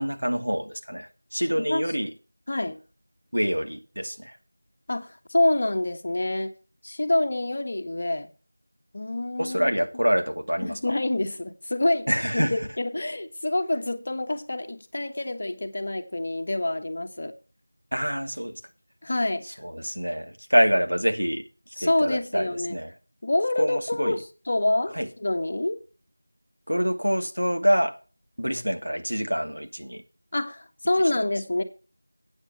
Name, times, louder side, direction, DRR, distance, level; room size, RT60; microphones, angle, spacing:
voice 1, 0.0-2.1 3.3-4.3 9.4-10.8 12.1-12.6 17.9-18.6 19.6-21.4 21.8-22.9 23.6-24.2 24.9-25.1 26.7-28.0 28.4-30.0, equal, 80° right, 2.4 m, -26 dB
voice 2, 2.5-2.8 4.9-6.5 6.8-8.3 8.9-10.0 10.6-12.1 12.3-17.3 19.0-19.6 21.8-22.8 23.2-25.8 30.3-31.6, left 1 dB, 35° left, 1.3 m, -27 dB
13.0 x 8.4 x 4.6 m
figure-of-eight pair, 175°, 0 cm